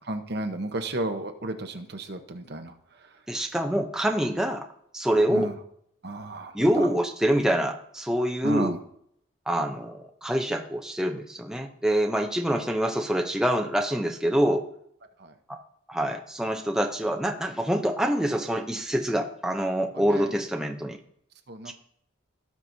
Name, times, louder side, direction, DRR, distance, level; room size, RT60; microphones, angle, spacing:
voice 1, 0.1-2.7 5.3-5.6 6.0-6.9 8.4-8.8 15.2-15.3 19.9-20.4 21.5-21.7, right 2 dB, 50° right, 6 dB, 0.9 m, -33 dB
voice 2, 3.3-4.7 4.9-5.5 6.5-8.7 9.5-14.6 15.5-15.6 15.9-21.0 21.7-21.8, equal, 5° right, 2 dB, 0.6 m, -26 dB
17.5 x 5.9 x 2.7 m, 0.71 s
head